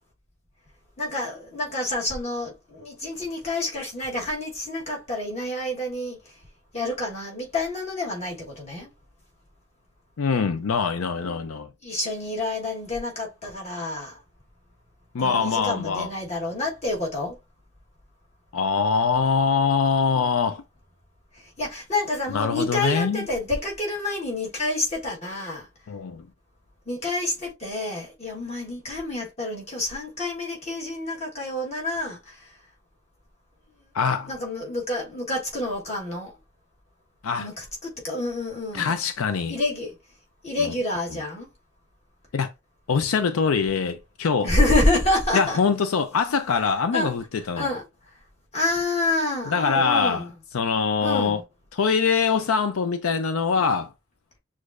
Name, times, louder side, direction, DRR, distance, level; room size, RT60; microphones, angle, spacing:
voice 1, 1.0-6.2 6.7-8.9 11.8-14.2 15.2-17.3 21.6-25.7 26.9-32.5 34.3-36.3 37.4-38.9 39.5-39.9 40.4-41.5 44.4-45.6 46.9-47.1 47.6-47.8 48.5-50.3 51.0-51.4, left 2 dB, 30° left, 1.3 m, -28 dB
voice 2, 10.2-11.7 15.1-16.1 18.5-20.6 22.3-23.3 25.9-26.3 33.9-34.3 37.2-37.5 38.7-39.6 40.6-40.7 42.3-42.5 42.9-44.6 45.3-47.7 49.5-50.2 50.5-51.4 51.7-53.9, left 5 dB, 80° left, 0.5 m, -23 dB
6.4 x 2.5 x 2.5 m
head